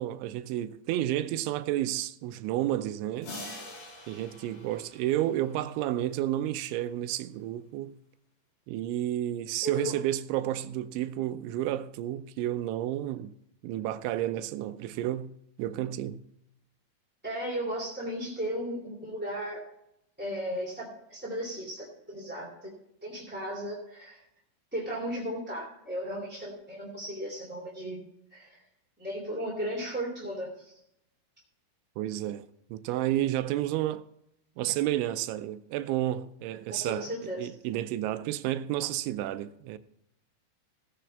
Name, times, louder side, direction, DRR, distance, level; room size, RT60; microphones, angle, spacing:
voice 1, 0.0-3.3 4.1-7.9 8.7-13.3 13.6-16.2 32.0-34.1 34.6-39.8, right 13 dB, 85° right, 3.0 m, -31 dB
sound 1, 3.2-6.0, left 2 dB, 60° left, 6.0 m, -45 dB
voice 2, 9.6-9.9 17.2-19.6 20.2-22.7 23.0-24.2 24.7-28.0 28.3-28.6 29.0-30.7 36.7-37.5, equal, 5° right, 1.7 m, -35 dB
16.5 x 9.3 x 3.5 m
omnidirectional pair, 5.3 m